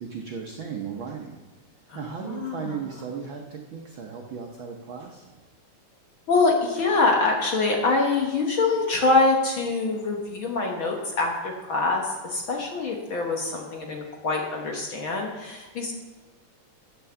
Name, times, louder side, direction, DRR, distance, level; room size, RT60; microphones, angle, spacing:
voice 1, 0.0-1.4 1.9-5.4, right 6 dB, 70° right, 1 dB, 1.1 m, -36 dB
voice 2, 1.9-2.8 6.3-15.9, left 3 dB, 55° left, 0 dB, 1.6 m, -24 dB
9.2 x 8.3 x 6.9 m, 1.2 s
omnidirectional pair, 3.5 m